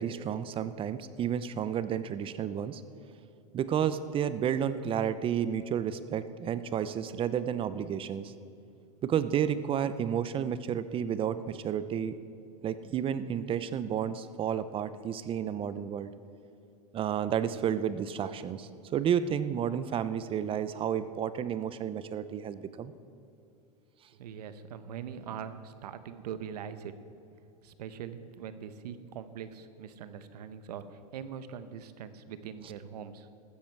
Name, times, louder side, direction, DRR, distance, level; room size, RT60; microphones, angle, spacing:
voice 1, 0.0-2.8 3.5-8.3 9.0-12.1 12.6-16.1 16.9-22.9, right 9 dB, 25° right, 14 dB, 0.6 m, -31 dB
voice 2, 24.2-26.9 27.6-30.8 31.1-33.3, right 8 dB, 85° right, 12 dB, 0.9 m, -42 dB
15.0 x 13.0 x 4.6 m, 2.6 s
supercardioid pair, 125°, 20 cm